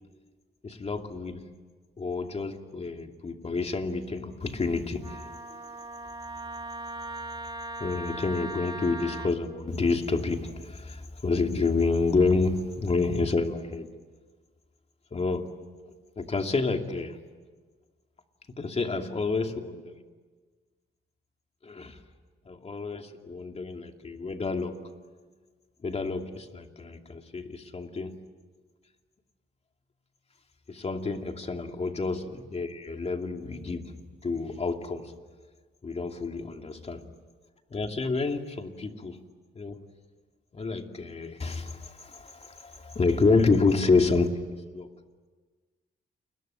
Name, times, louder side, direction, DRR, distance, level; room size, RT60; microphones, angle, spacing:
voice 1, 0.6-1.5 2.0-5.3 7.8-13.9 15.1-15.5 16.2-17.2 18.6-20.0 21.6-22.0 22.5-24.9 25.8-28.2 30.7-35.1 35.8-37.1 37.7-39.2 39.6-39.8 40.5-44.4 44.7-44.9, left 3 dB, 30° left, 5 dB, 2.6 m, -29 dB
Wind instrument woodwind instrument, 5.0-9.3, right 2 dB, 25° right, 2.2 m, -39 dB
29.5 x 22.0 x 9.2 m, 1.4 s
cardioid pair, 90°, 20 cm